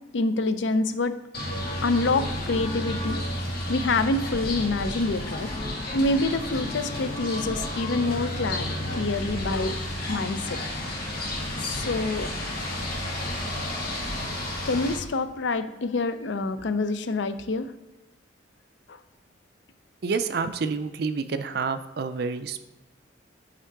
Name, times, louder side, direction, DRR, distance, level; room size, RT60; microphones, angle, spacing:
voice 1, 0.1-1.2 1.8-3.2 3.7-5.5 5.9-10.6 11.6-12.3 14.7-17.7 18.9-19.0, left 3 dB, 70° left, 12 dB, 0.5 m, -27 dB
sound 1, 1.3-15.0, left 1 dB, 50° left, 1.8 m, -31 dB
voice 2, 20.0-22.6, right 4 dB, 55° right, 10 dB, 0.4 m, -28 dB
8.0 x 3.7 x 4.5 m, 1.0 s
head